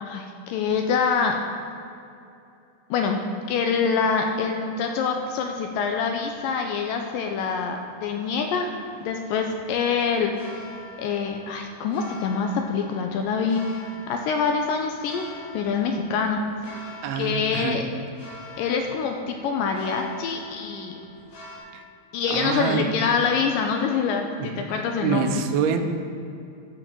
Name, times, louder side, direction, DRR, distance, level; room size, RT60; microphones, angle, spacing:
voice 1, 0.0-1.4 2.9-3.2 3.5-10.3 11.0-13.8 14.1-16.8 17.2-17.8 18.6-21.0 22.1-25.3, left 5 dB, 80° left, 3 dB, 2.1 m, -25 dB
sound 1, 5.2-21.6, left 1 dB, 45° left, 2.3 m, -45 dB
voice 2, 17.0-17.8 21.7-21.8 22.3-22.9 24.4-24.6 25.0-25.8, right 6 dB, 85° right, 6 dB, 2.7 m, -26 dB
11.5 x 5.0 x 7.5 m, 2.6 s
omnidirectional pair, 4.3 m